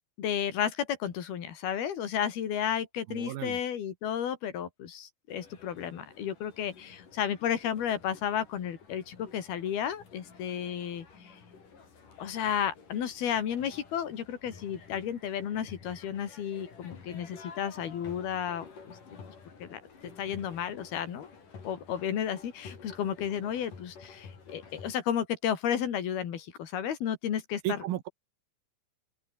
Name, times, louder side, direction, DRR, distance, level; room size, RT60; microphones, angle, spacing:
voice 1, 0.2-11.1 12.2-19.0 19.6-19.8 20.2-21.3 21.6-27.8, left 9 dB, 90° left, 4.6 m, -32 dB
voice 2, 3.1-3.6 27.6-28.1, right 13 dB, 80° right, 3.1 m, -33 dB
sound 1, 5.3-25.0, left 5 dB, 60° left, 6.3 m, -51 dB
open air
omnidirectional pair, 4.3 m